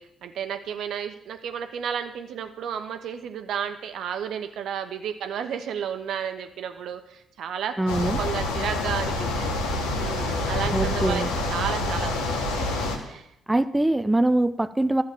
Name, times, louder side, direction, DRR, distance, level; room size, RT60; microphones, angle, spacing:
voice 1, 0.0-9.6 10.0-12.8 13.0-13.3, right 8 dB, 60° right, 8 dB, 1.0 m, -32 dB
voice 2, 7.8-8.2 10.7-11.3 13.5-15.0, right 1 dB, 10° right, 11 dB, 0.5 m, -23 dB
sound 1, 7.9-13.0, left 2 dB, 75° left, 1.5 m, -27 dB
12.5 x 7.6 x 7.2 m, 0.80 s
figure-of-eight pair, 40°, 0 cm